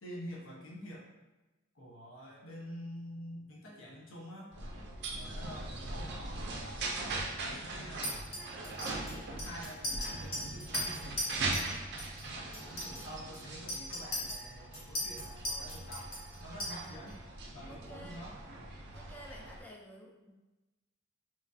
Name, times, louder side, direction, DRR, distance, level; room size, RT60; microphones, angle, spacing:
voice 1, 0.0-1.1 1.7-4.5 5.1-8.2 8.6-11.2 12.3-16.1 16.4-17.2 17.5-18.4, equal, 70° left, -3 dB, 0.8 m, -48 dB
sound 1, 4.5-19.6, right 2 dB, 55° right, 0.4 m, -41 dB
Chink clink, 8.0-11.7 12.0-12.3 12.5-17.1, left 1 dB, 45° left, 1.0 m, -39 dB
voice 2, 12.5-13.1 17.6-18.2 18.9-20.3, equal, 10° left, -1 dB, 0.3 m, -52 dB
3.0 x 2.3 x 2.6 m, 1.1 s
head